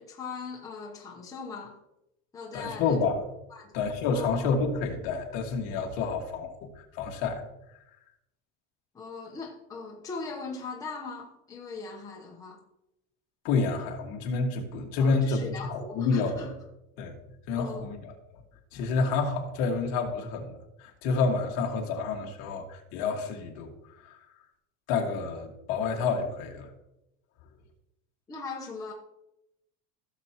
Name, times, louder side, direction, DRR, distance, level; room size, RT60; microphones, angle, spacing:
voice 1, 0.0-1.8 2.3-3.0 3.5-3.7 4.1-4.5 8.9-12.6 15.0-16.5 17.5-17.9 28.3-28.9, left 4 dB, 10° left, -2 dB, 0.9 m, -40 dB
voice 2, 2.5-3.2 3.7-7.4 13.4-16.5 17.0-17.1 17.5-18.2 18.7-23.7 24.0-24.1 24.9-26.7, left 4 dB, 50° left, 2 dB, 1.8 m, -29 dB
16.0 x 7.0 x 3.0 m, 0.88 s
cardioid pair, 175°, 34 cm